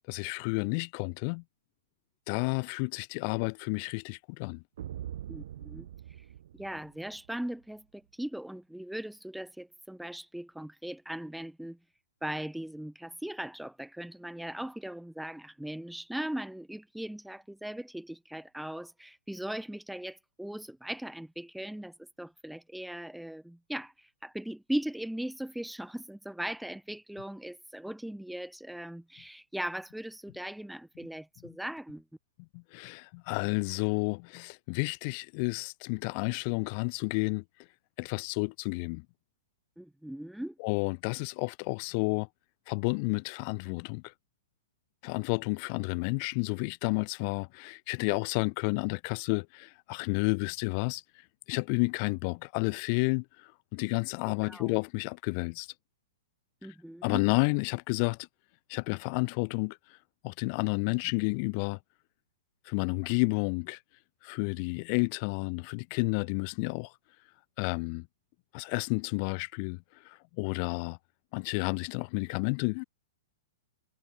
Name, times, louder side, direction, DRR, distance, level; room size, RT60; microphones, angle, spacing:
voice 1, 0.1-1.4 2.3-4.6 32.5-37.4 38.0-39.0 40.6-42.3 42.7-44.1 45.0-51.0 51.5-55.7 57.0-58.2 58.7-59.8 60.2-61.8 62.6-63.8 64.2-66.9 67.6-68.1 68.5-71.0 71.3-72.8, left 35 dB, 40° left, 1.6 m, -31 dB
sound 1, 4.8-7.4, right 11 dB, 55° right, 6.1 m, -43 dB
voice 2, 5.3-5.9 6.6-11.8 12.2-32.0 39.8-40.5 54.4-54.7 56.6-57.2, right 1 dB, ahead, 1.0 m, -39 dB
figure-of-eight pair, 105°, 0 cm